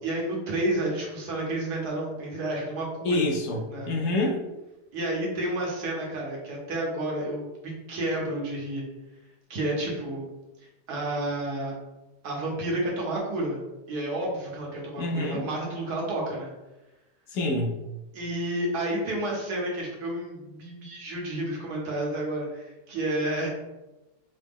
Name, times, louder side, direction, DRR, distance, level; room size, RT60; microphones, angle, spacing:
voice 1, 0.0-3.3 3.7-3.9 4.9-8.8 9.5-10.3 10.9-11.7 12.2-16.5 18.1-23.5, right 1 dB, 70° right, -2 dB, 1.4 m, -30 dB
voice 2, 3.0-3.6 3.9-4.4 15.0-15.4 17.3-17.7, left 2 dB, 75° left, 1 dB, 1.1 m, -26 dB
4.0 x 2.1 x 3.5 m, 1.0 s
omnidirectional pair, 1.8 m